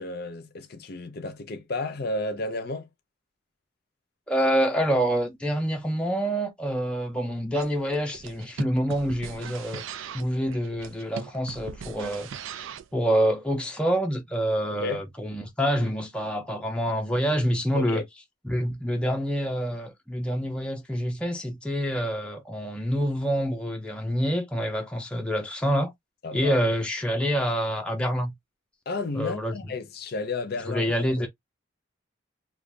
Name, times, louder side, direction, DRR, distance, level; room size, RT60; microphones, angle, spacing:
voice 1, 0.0-2.9 14.7-15.0 17.7-18.0 26.2-26.6 28.9-31.3, left 2 dB, 50° left, 0.6 m, -32 dB
voice 2, 4.3-9.8 10.1-12.3 12.9-18.0 18.4-25.9 26.3-28.3 29.1-29.5 30.7-31.3, equal, 5° left, 0.5 m, -27 dB
sound 1, 7.5-12.9, right 7 dB, 80° right, 0.4 m, -40 dB
2.5 x 2.2 x 3.2 m
head